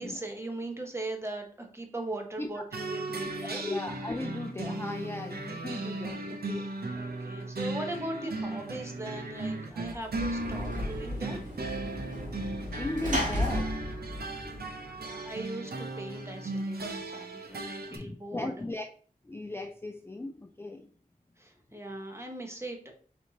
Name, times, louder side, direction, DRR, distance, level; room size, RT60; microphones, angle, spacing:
voice 1, 0.0-3.6 6.9-11.4 14.9-18.5 21.4-22.9, right 2 dB, 15° right, 2 dB, 1.1 m, -39 dB
sound 1, 2.7-18.0, right 2 dB, 90° right, 0.7 m, -37 dB
voice 2, 3.4-6.7 12.7-13.7 17.9-18.9 19.2-20.9, left 2 dB, 15° left, 6 dB, 0.4 m, -37 dB
Sliding door / Slam, 9.8-15.2, equal, 55° right, 1.9 m, -35 dB
4.5 x 4.2 x 2.8 m, 0.43 s
wide cardioid pair, 65°, 16 cm